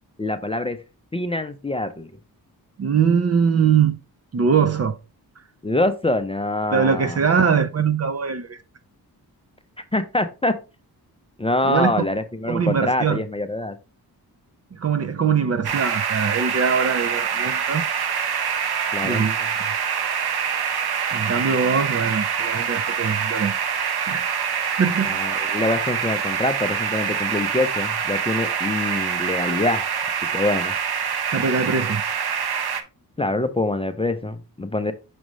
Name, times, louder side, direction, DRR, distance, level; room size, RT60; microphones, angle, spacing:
voice 1, 0.2-0.8 1.1-2.1 5.6-7.2 9.9-10.5 11.4-13.8 18.9-19.3 25.1-29.9 30.3-30.7 33.2-34.9, left 2 dB, 15° left, 0.5 m, -25 dB
voice 2, 2.8-4.0 4.3-5.0 6.7-8.6 11.6-12.1 12.5-13.2 14.7-17.9 19.0-19.4 21.1-23.6 24.1-24.2 24.8-25.2 31.3-32.0, right 6 dB, 40° right, 0.5 m, -22 dB
sound 1, 15.6-32.8, right 7 dB, 75° right, 0.9 m, -25 dB
6.3 x 5.1 x 3.1 m
wide cardioid pair, 115°, 39 cm